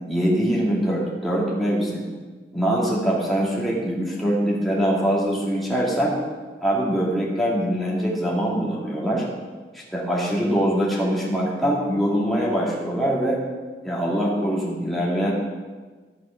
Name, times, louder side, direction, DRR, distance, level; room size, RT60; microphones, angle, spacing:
voice 1, 0.1-2.1 2.5-6.2 6.6-9.2 9.7-13.4 13.8-15.3, equal, ahead, -6 dB, 2.3 m, -23 dB
13.5 x 5.6 x 5.8 m, 1.4 s
head